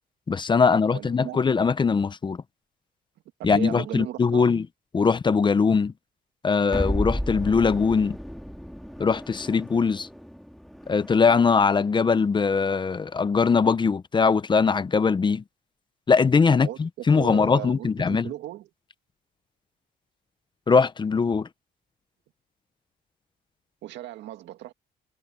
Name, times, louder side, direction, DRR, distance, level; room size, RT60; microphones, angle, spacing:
voice 1, 0.3-2.4 3.4-4.7 4.9-5.9 6.4-8.2 9.0-10.1 10.9-15.4 16.1-18.3 20.7-21.5, left 5 dB, 25° left, 0.7 m, -21 dB
voice 2, 0.9-1.4 3.4-4.5 16.5-18.7 23.8-24.7, right 14 dB, 85° right, 1.8 m, -37 dB
sound 1, 6.7-11.8, equal, ahead, 1.9 m, -33 dB
cardioid pair, 110°, 18 cm